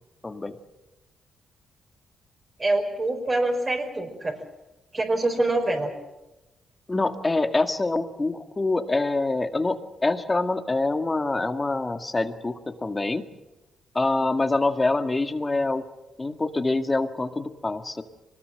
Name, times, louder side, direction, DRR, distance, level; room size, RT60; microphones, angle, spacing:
voice 1, 0.2-0.5 6.9-13.2 13.9-15.9 16.2-18.0, left 2 dB, 25° left, 8 dB, 1.9 m, -25 dB
voice 2, 2.6-4.3 4.9-5.9, right 2 dB, 35° right, 1 dB, 5.0 m, -25 dB
23.5 x 19.5 x 7.8 m, 1.0 s
supercardioid pair, 55°, 0 cm